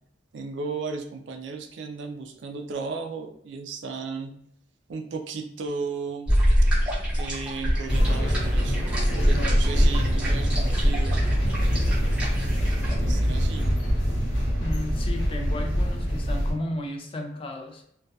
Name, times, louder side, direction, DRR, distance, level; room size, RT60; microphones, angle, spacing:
voice 1, 0.3-4.3 4.9-6.3 6.7-8.8 9.3-11.2 13.0-13.7, right 4 dB, 70° right, 4 dB, 0.3 m, -35 dB
sound 1, 6.3-13.0, equal, 5° right, 0.8 m, -24 dB
sound 2, 7.9-16.5, equal, 75° left, 0.8 m, -25 dB
voice 2, 14.6-17.8, left 1 dB, 30° left, 4 dB, 0.3 m, -34 dB
2.2 x 2.2 x 2.6 m, 0.70 s
head